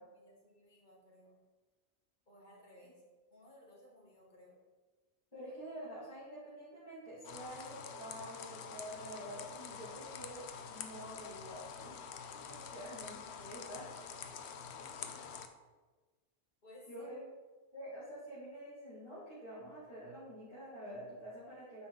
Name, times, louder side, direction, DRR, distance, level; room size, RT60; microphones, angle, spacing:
voice 1, 0.1-1.4 2.3-3.0 3.3-4.6 12.5-12.6 14.8-15.3 16.6-17.1, left 1 dB, 45° left, -4 dB, 2.1 m, -60 dB
voice 2, 5.3-12.0 12.5-13.9 16.9-17.3 17.7-21.9, equal, 25° left, -13 dB, 2.6 m, -48 dB
sound 1, 7.2-15.5, left 7 dB, 85° left, 0.9 m, -47 dB
8.5 x 5.4 x 4.0 m, 1.3 s
omnidirectional pair, 1.1 m